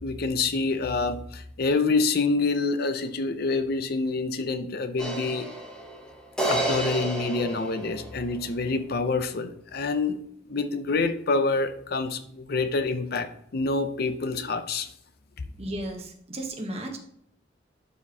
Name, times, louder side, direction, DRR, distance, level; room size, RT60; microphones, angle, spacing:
voice 1, 0.0-5.5 6.5-10.2 10.5-14.9, left 3 dB, 55° left, 9 dB, 0.6 m, -27 dB
sound 1, 5.0-8.4, right 1 dB, 5° left, 1.2 m, -31 dB
voice 2, 15.6-17.0, right 1 dB, 35° right, 2 dB, 1.1 m, -34 dB
12.0 x 4.2 x 2.8 m, 0.69 s
head